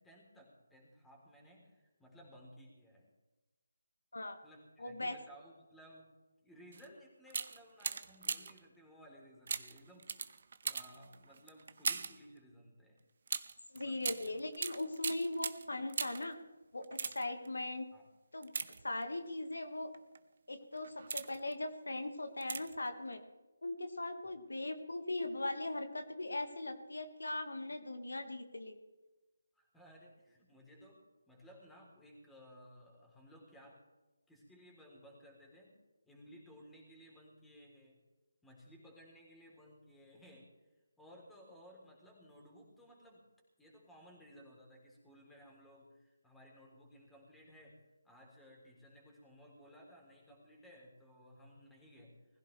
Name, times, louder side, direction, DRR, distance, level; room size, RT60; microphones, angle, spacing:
voice 1, 0.0-3.1 4.4-6.1 6.4-13.0 13.7-14.3 17.9-18.1 24.2-24.3 29.5-33.8 34.3-35.8 36.0-38.0 38.4-40.5 41.0-43.3 43.6-47.8 48.0-52.4, equal, 5° left, -2 dB, 3.6 m, -58 dB
voice 2, 4.8-5.2 13.7-16.4 16.7-17.9 18.3-18.5 18.8-19.9 20.5-23.2 23.6-28.8, left 2 dB, 75° left, 6 dB, 1.8 m, -39 dB
sound 1, 6.7-6.9 7.3-8.7 9.5-12.2 13.3-16.3 16.8-17.5 18.4-19.3 19.9-20.2 20.7-21.5 22.4-22.9 23.1-23.2, right 5 dB, 50° right, 0.9 m, -40 dB
20.5 x 15.5 x 3.4 m, 1.1 s
figure-of-eight pair, 155°, 0 cm